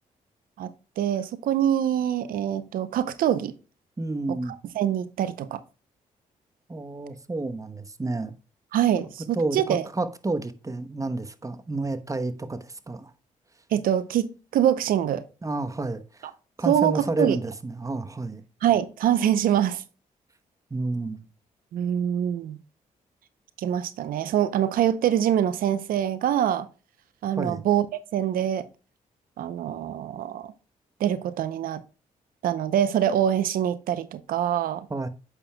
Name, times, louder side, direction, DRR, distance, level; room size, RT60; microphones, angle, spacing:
voice 1, 1.0-3.5 4.3-4.4 4.7-5.6 8.7-9.8 13.7-15.2 16.7-17.4 18.6-19.8 21.7-22.6 23.6-26.7 27.2-28.6 29.4-30.5 31.0-31.8 32.4-34.9, right 10 dB, 85° right, 0.6 m, -24 dB
voice 2, 4.0-4.5 6.7-8.3 9.3-13.1 15.4-16.3 16.6-18.4 20.7-21.3 27.4-27.6 34.9-35.1, right 2 dB, 25° right, 1.0 m, -30 dB
8.7 x 6.7 x 2.2 m
cardioid pair, 65°, 14 cm